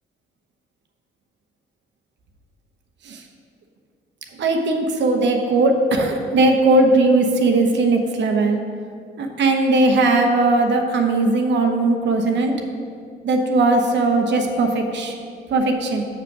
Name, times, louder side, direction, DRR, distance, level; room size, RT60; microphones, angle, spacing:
voice 1, 4.4-8.6 9.2-12.5 13.2-15.1 15.5-16.1, right 2 dB, 65° right, 3 dB, 1.0 m, -18 dB
6.6 x 6.0 x 6.0 m, 2.3 s
cardioid pair, 90°, 20 cm